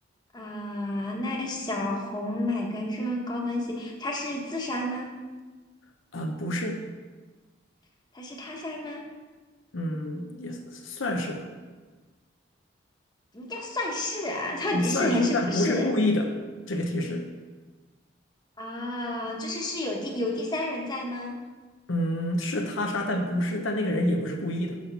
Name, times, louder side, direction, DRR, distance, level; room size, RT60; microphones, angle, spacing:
voice 1, 0.3-5.1 8.1-9.0 13.3-15.9 18.6-21.4, left 1 dB, 20° left, -1 dB, 1.2 m, -30 dB
voice 2, 6.1-6.8 9.7-11.5 14.7-16.3 16.7-17.2 21.9-24.8, left 1 dB, 85° left, 3 dB, 0.9 m, -28 dB
6.3 x 5.8 x 5.5 m, 1.3 s
head